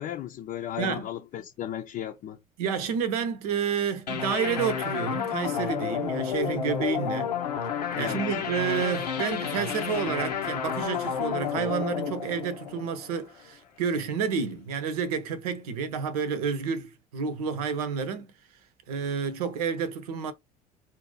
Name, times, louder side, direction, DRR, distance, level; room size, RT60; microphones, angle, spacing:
voice 1, 0.0-2.4 8.0-8.4, left 11 dB, 40° left, 0.6 m, -35 dB
voice 2, 2.6-7.3 8.0-18.3 18.9-20.3, right 6 dB, 65° right, 0.8 m, -30 dB
sound 1, 4.1-13.4, left 8 dB, 80° left, 0.7 m, -31 dB
4.3 x 2.6 x 3.9 m
figure-of-eight pair, 60°, 21 cm